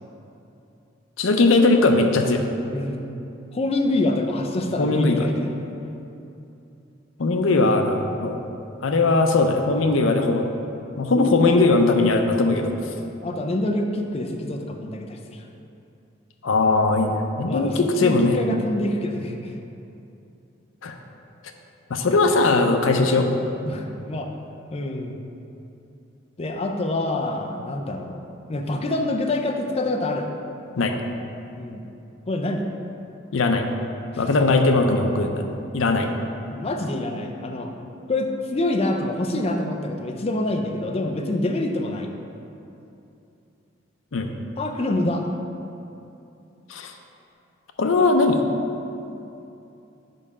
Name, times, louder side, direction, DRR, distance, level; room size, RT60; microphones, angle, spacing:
voice 1, 1.2-2.4 4.8-5.3 7.2-8.4 8.8-10.5 11.0-12.7 16.4-18.4 20.8-20.9 21.9-23.3 30.8-30.9 33.3-33.6 34.2-35.4 35.7-36.1 44.1-44.3 46.7-46.9 47.8-48.4, left 3 dB, 85° left, 5 dB, 0.6 m, -19 dB
voice 2, 2.7-3.1 3.5-5.5 12.7-15.4 17.5-19.5 22.7-22.9 23.7-24.3 24.7-25.2 26.4-28.2 28.5-30.3 31.6-31.8 32.3-32.7 34.1-34.3 36.0-36.2 36.5-37.7 38.1-42.1 44.6-45.3 49.1-49.2, left 2 dB, 30° left, 3 dB, 0.4 m, -26 dB
5.3 x 4.9 x 5.4 m, 2.8 s
head